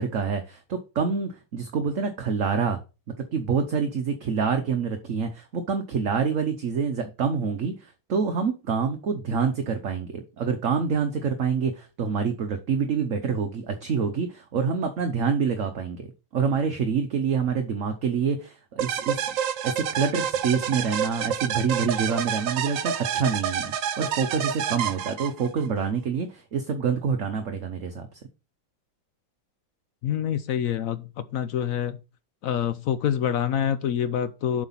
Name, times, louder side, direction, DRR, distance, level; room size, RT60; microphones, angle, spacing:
voice 1, 0.0-2.8 3.2-19.3 19.6-28.1, right 6 dB, 55° right, 1.0 m, -27 dB
sound 1, 18.8-25.7, right 8 dB, 80° right, 1.5 m, -28 dB
voice 2, 30.0-32.0 32.4-34.7, left 9 dB, 70° left, 0.8 m, -26 dB
7.7 x 5.0 x 5.6 m
omnidirectional pair, 2.0 m